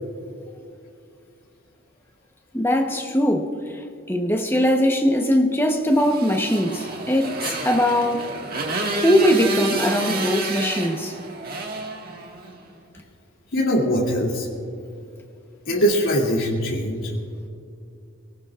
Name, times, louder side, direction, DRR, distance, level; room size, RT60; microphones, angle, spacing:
voice 1, 2.5-8.3 8.9-11.1, equal, 10° left, 1.0 m, -21 dB
Motorcycle, 5.9-12.6, right 2 dB, 45° right, 1.8 m, -29 dB
voice 2, 13.5-14.5 15.7-17.1, equal, 75° left, 2.8 m, -21 dB
24.0 x 18.0 x 2.5 m
head